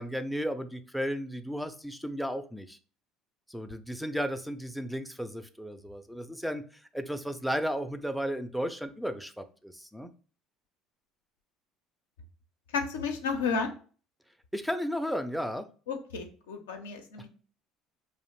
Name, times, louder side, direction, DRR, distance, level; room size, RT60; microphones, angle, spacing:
voice 1, 0.0-2.8 3.5-6.6 6.9-10.1 14.5-15.7, equal, ahead, 9 dB, 0.3 m, -34 dB
voice 2, 12.7-13.7 15.9-17.3, left 5 dB, 85° left, 5 dB, 0.4 m, -32 dB
2.5 x 2.0 x 2.9 m, 0.39 s
hypercardioid pair, 65°, 0 cm